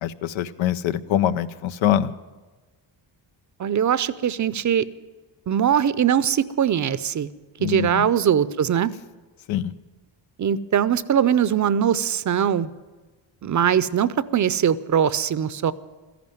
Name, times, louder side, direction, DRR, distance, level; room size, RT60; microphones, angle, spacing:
voice 1, 0.0-2.1 7.6-8.1 9.5-9.7, left 11 dB, 90° left, 13 dB, 0.8 m, -24 dB
voice 2, 3.6-4.8 5.5-7.3 7.6-8.9 10.4-12.7 13.4-15.7, right 9 dB, 40° right, 17 dB, 0.6 m, -21 dB
14.0 x 11.0 x 9.1 m, 1.3 s
cardioid pair, 110°, 45 cm